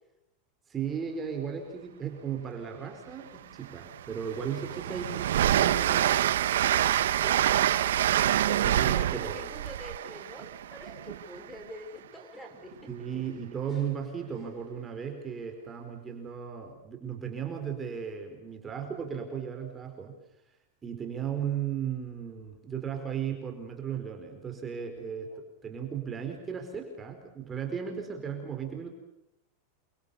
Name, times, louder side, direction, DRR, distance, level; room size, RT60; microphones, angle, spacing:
voice 1, 0.7-6.4 8.6-9.4 12.9-20.1 20.8-28.9, right 7 dB, 20° right, 3 dB, 4.6 m, -36 dB
sound 1, 1.6-2.5 3.1-3.2 3.6-4.0 4.4-9.8 10.0-10.5 10.8-15.1 15.6-16.1, left 2 dB, 20° left, 7.2 m, -59 dB
Train, 3.2-3.3 3.7-11.4, right 11 dB, 90° right, 1.1 m, -26 dB
voice 2, 8.5-12.9 25.3-25.4, equal, 5° left, 6 dB, 5.6 m, -45 dB
29.5 x 24.0 x 7.0 m, 0.90 s
supercardioid pair, 145°, 0 cm